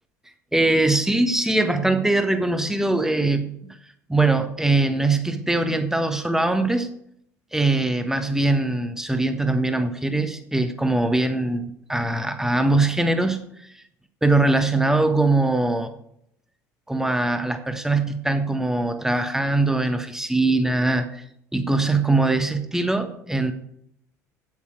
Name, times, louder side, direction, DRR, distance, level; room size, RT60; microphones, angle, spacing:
voice 1, 0.5-3.8 4.1-6.9 7.5-13.4 14.2-15.9 16.9-21.2 21.5-23.5, right 2 dB, 5° right, 8 dB, 1.4 m, -22 dB
9.2 x 8.4 x 4.8 m, 0.70 s
figure-of-eight pair, 65°, 9 cm